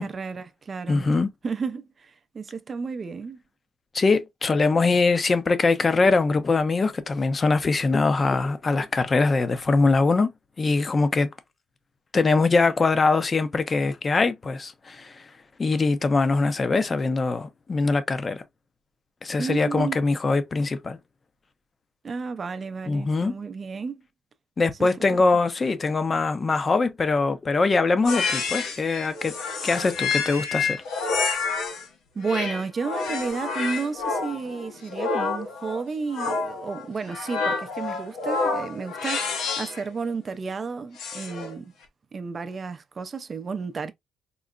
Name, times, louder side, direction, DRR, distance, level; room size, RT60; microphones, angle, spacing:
voice 1, 0.0-1.1 1.4-3.4 19.4-20.0 22.0-24.0 24.8-24.9 32.1-41.7 42.1-43.9, right 5 dB, 40° right, 0.4 m, -32 dB
voice 2, 0.9-1.3 3.9-10.3 10.6-11.3 12.1-15.1 15.6-18.4 19.2-21.0 22.9-23.3 24.6-29.3 29.6-30.8, left 3 dB, 35° left, 0.6 m, -22 dB
sound 1, 28.0-31.9 32.2-39.8 41.0-41.5, left 4 dB, 85° left, 0.9 m, -29 dB
3.8 x 2.1 x 2.3 m
cardioid pair, 90°, 0 cm